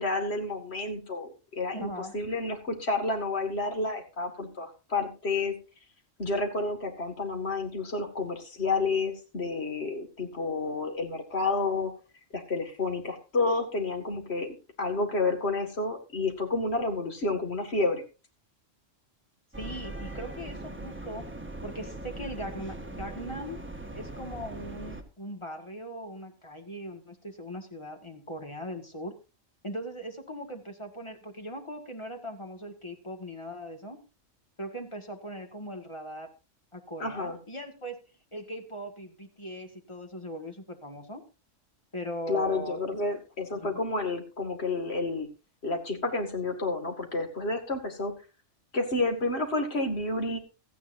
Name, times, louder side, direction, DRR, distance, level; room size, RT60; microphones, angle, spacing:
voice 1, 0.0-5.5 6.2-11.9 12.3-18.0 37.0-37.4 42.3-45.3 45.6-48.1 48.7-50.4, left 3 dB, 55° left, 5 dB, 2.4 m, -30 dB
voice 2, 1.7-2.1 19.6-21.3 21.6-23.6 23.9-29.1 29.6-34.0 34.6-36.3 36.7-38.0 38.3-41.2 41.9-42.8 43.5-43.8, equal, 25° left, 5 dB, 1.9 m, -39 dB
sound 1, 19.5-25.0, right 2 dB, 10° right, 1.4 m, -40 dB
16.5 x 13.5 x 2.7 m, 0.31 s
omnidirectional pair, 1.3 m